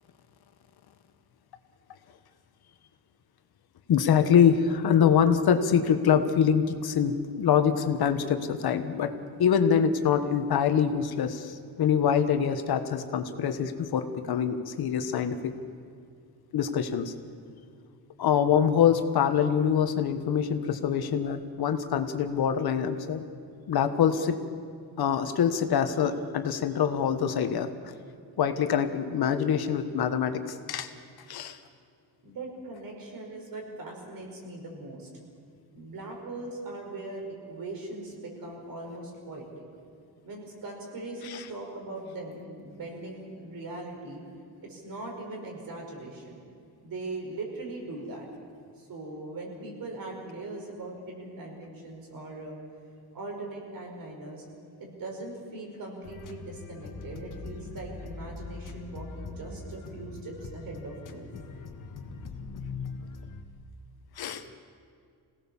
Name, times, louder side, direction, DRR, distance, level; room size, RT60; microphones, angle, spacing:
voice 1, 3.9-9.1 9.4-15.5 16.5-17.1 18.2-23.3 23.7-24.4 25.0-27.7 28.4-30.9 31.3-31.6 41.2-41.4 64.2-64.4, left 8 dB, 70° left, 8 dB, 1.4 m, -25 dB
voice 2, 32.2-35.1 35.7-39.4 40.2-44.2 44.6-46.4 46.8-48.3 48.8-52.6 53.1-54.4 54.8-61.3, right 2 dB, 60° right, 0 dB, 5.5 m, -40 dB
sound 1, 56.0-63.4, left 4 dB, 55° left, 1.6 m, -41 dB
26.0 x 17.5 x 7.2 m, 2.3 s
wide cardioid pair, 160°, 39 cm